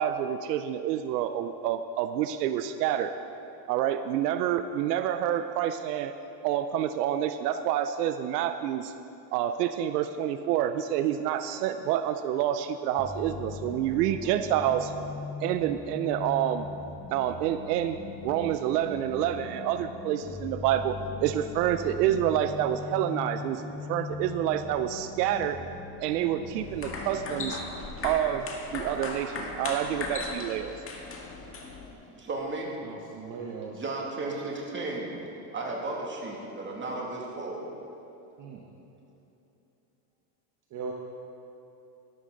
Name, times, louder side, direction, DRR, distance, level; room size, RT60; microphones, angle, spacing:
voice 1, 0.0-3.1 3.7-6.1 6.4-8.9 9.3-14.9 15.4-16.7 17.1-18.0 18.2-23.6 23.9-25.6 26.0-27.6 28.0-28.5 28.7-30.7, right 11 dB, 90° right, 10 dB, 0.6 m, -28 dB
sound 1, 13.0-27.6, left 4 dB, 10° left, 0.9 m, -40 dB
sound 2, 26.6-31.9, left 3 dB, 30° left, 1.8 m, -37 dB
voice 2, 32.2-32.7 33.7-35.2 35.5-37.6, right 2 dB, 25° right, -2 dB, 2.4 m, -34 dB
voice 3, 32.8-33.8 38.4-38.6 40.7-40.9, right 5 dB, 40° right, -1 dB, 1.2 m, -39 dB
12.5 x 12.0 x 3.9 m, 2.9 s
supercardioid pair, 110°, 46 cm